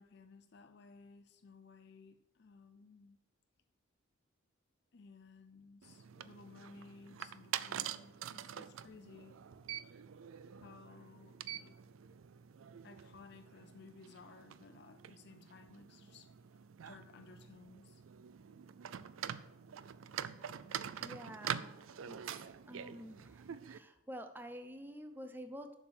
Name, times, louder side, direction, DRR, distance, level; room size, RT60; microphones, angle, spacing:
voice 1, 0.0-3.2 4.9-9.3 10.6-11.8 12.8-16.3 16.8-18.0, left 4 dB, 55° left, 7 dB, 0.5 m, -58 dB
sound 1, 5.8-23.8, right 9 dB, 85° right, 0.4 m, -46 dB
voice 2, 21.0-25.7, equal, 10° right, 8 dB, 0.6 m, -49 dB
7.2 x 6.4 x 6.2 m, 0.92 s
head